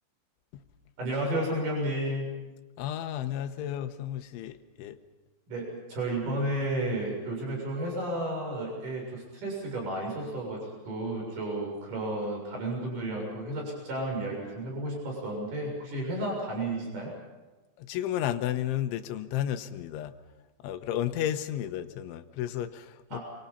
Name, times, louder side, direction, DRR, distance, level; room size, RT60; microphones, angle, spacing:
voice 1, 1.0-2.3 5.5-17.1 23.1-23.2, right 1 dB, 45° right, 8.5 m, -32 dB
voice 2, 2.8-5.0 17.8-20.2 20.6-23.2, left 11 dB, 90° left, 3.5 m, -32 dB
29.0 x 24.0 x 5.6 m
omnidirectional pair, 5.3 m